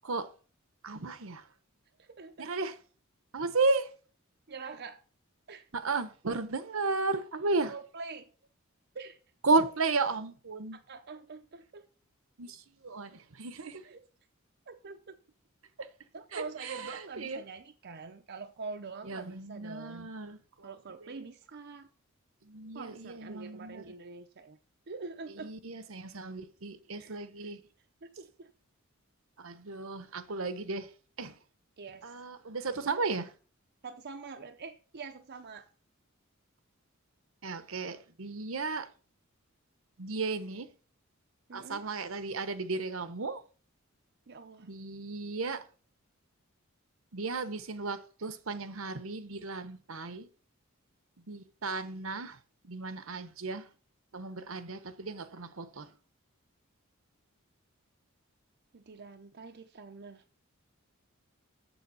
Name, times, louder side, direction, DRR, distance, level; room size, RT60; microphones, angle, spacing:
voice 1, 0.8-1.4 2.4-2.8 3.3-3.9 5.7-7.7 9.4-10.8 12.4-13.8 16.3-17.4 19.0-20.8 21.0-21.2 22.4-23.9 25.4-27.6 29.4-30.9 31.2-31.3 32.0-33.3 37.4-38.9 40.0-40.7 41.5-43.4 44.6-45.6 47.1-50.3 51.3-52.4 52.6-53.7 54.1-55.9, right 3 dB, 70° right, 1.0 m, -34 dB
voice 2, 2.0-2.5 4.5-5.0 5.5-5.7 7.6-8.3 8.9-9.2 10.7-11.9 13.8-14.0 14.7-15.1 16.1-20.1 20.6-21.9 22.7-24.6 24.9-25.5 27.0-27.5 28.0-28.5 31.8-32.1 33.8-35.7 41.5-41.8 44.3-44.7 58.7-60.2, right 4 dB, 55° right, 0.7 m, -45 dB
7.2 x 7.1 x 5.5 m
head